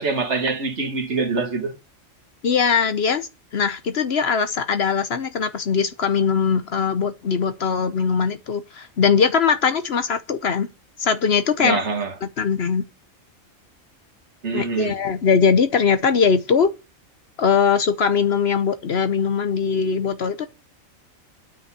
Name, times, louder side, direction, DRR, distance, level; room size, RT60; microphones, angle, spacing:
voice 1, 0.0-1.8 11.6-12.1 14.4-14.9, right 4 dB, 60° right, 2.0 m, -24 dB
voice 2, 2.4-10.7 11.0-11.8 12.2-12.8 14.5-16.7 17.4-20.5, left 6 dB, 55° left, 1.0 m, -21 dB
9.2 x 5.4 x 6.9 m
omnidirectional pair, 1.4 m